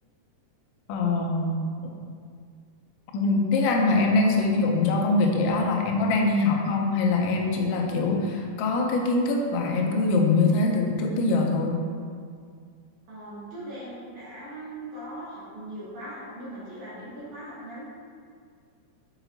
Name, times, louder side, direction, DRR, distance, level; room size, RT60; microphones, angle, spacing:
voice 1, 0.9-1.6 3.1-11.8, left 3 dB, 85° left, 1 dB, 3.0 m, -23 dB
voice 2, 13.1-17.9, right 1 dB, 65° right, -10 dB, 1.7 m, -39 dB
6.8 x 5.7 x 2.7 m, 2.1 s
omnidirectional pair, 5.1 m